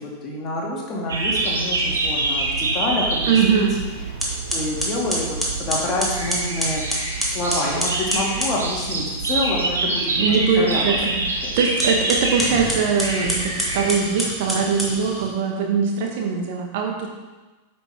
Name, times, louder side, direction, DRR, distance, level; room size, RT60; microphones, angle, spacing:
voice 1, 0.0-3.7 4.5-6.8 7.2-10.8 11.4-11.5, left 1 dB, 30° left, -2 dB, 2.2 m, -27 dB
sound 1, 1.1-13.9, right 2 dB, 70° right, 1.4 m, -26 dB
voice 2, 3.2-3.8 10.2-17.1, right 6 dB, 50° right, 1 dB, 1.3 m, -22 dB
sound 2, 4.2-8.6 11.7-15.4, equal, ahead, 1.8 m, -27 dB
9.5 x 6.0 x 3.5 m, 1.2 s
figure-of-eight pair, 90°, 0 cm